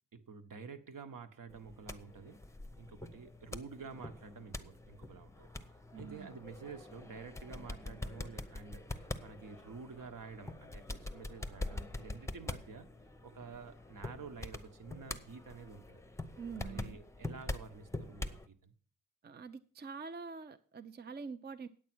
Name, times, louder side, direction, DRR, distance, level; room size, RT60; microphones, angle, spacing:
voice 1, 0.1-2.4 2.8-5.5 5.9-12.9 13.2-16.0 16.6-18.7, right 5 dB, 65° right, 7 dB, 1.3 m, -50 dB
sound 1, 1.5-18.5, left 2 dB, 10° left, 0.7 m, -45 dB
voice 2, 5.9-6.4 16.4-17.0 19.2-21.7, right 5 dB, 30° right, 10 dB, 0.5 m, -45 dB
9.1 x 8.4 x 6.1 m, 0.43 s
wide cardioid pair, 125°, 34 cm